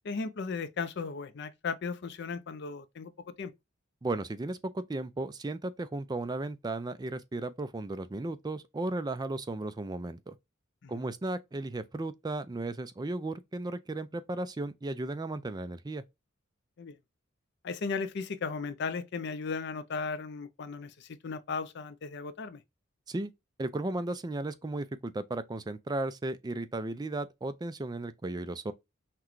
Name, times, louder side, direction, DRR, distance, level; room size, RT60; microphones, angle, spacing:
voice 1, 0.0-3.1 3.4-3.5 10.8-11.0 16.8-16.9 17.6-22.6, left 4 dB, 55° left, 0.5 m, -36 dB
voice 2, 4.0-10.3 10.9-16.0 23.1-23.3 23.6-28.7, right 2 dB, 20° right, 0.4 m, -35 dB
5.8 x 2.2 x 3.1 m
head